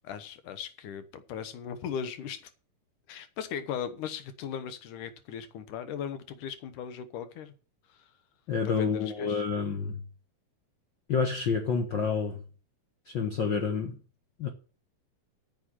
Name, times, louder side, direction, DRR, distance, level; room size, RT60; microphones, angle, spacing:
voice 1, 0.0-2.5 3.1-7.5 7.9-8.1 8.6-9.5, left 8 dB, 85° left, 2.7 m, -38 dB
voice 2, 8.5-10.0 11.1-12.4 13.1-14.0 14.4-14.5, left 5 dB, 55° left, 1.4 m, -28 dB
9.0 x 7.0 x 8.7 m
omnidirectional pair, 3.5 m